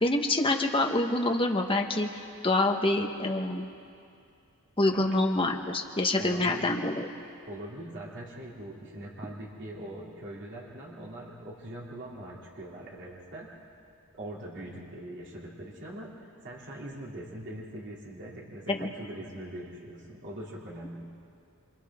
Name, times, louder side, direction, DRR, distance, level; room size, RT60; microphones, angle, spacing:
voice 1, 0.0-3.7 4.8-7.1 18.7-18.9, left 2 dB, 25° left, 3 dB, 1.3 m, -26 dB
voice 2, 6.2-6.7 7.5-13.7 14.1-21.1, right 1 dB, 55° right, -4 dB, 2.9 m, -42 dB
28.0 x 26.0 x 3.7 m, 2.4 s
head